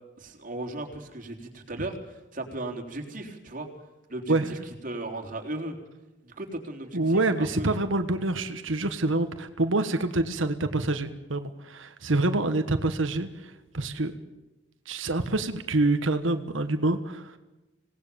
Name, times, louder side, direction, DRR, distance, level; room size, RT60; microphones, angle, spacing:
voice 1, 0.2-3.7 4.1-5.8 6.2-7.7, right 2 dB, 45° right, 3 dB, 3.9 m, -36 dB
voice 2, 6.9-14.1 14.9-17.4, right 2 dB, 90° right, 8 dB, 1.5 m, -26 dB
26.5 x 19.0 x 7.1 m, 1.0 s
head